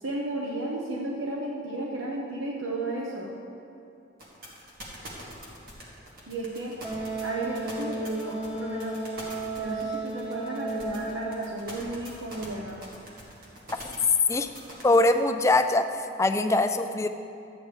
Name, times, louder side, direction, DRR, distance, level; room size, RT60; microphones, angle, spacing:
voice 1, 0.0-3.3 6.3-6.7 7.2-9.0 9.6-12.8, right 2 dB, 85° right, -3 dB, 0.9 m, -33 dB
sound 1, 4.2-15.1, right 1 dB, 50° right, 1.8 m, -43 dB
Wind instrument woodwind instrument, 6.8-11.5, right 2 dB, 5° right, 1.1 m, -34 dB
voice 2, 14.8-15.9 16.2-17.1, left 2 dB, 15° left, 7 dB, 0.3 m, -22 dB
13.0 x 8.7 x 3.2 m, 2.6 s
head